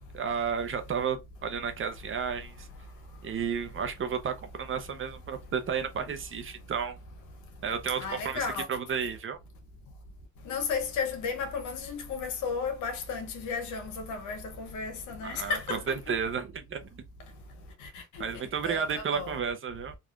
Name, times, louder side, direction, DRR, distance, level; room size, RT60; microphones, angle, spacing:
voice 1, 0.1-2.7 3.2-7.0 7.6-9.4 15.2-16.9 18.2-20.0, right 6 dB, 45° right, 0.6 m, -32 dB
voice 2, 8.0-8.6 10.5-15.8 18.6-19.4, left 5 dB, 85° left, 0.9 m, -33 dB
3.5 x 2.3 x 2.4 m
cardioid pair, 90°, 30 cm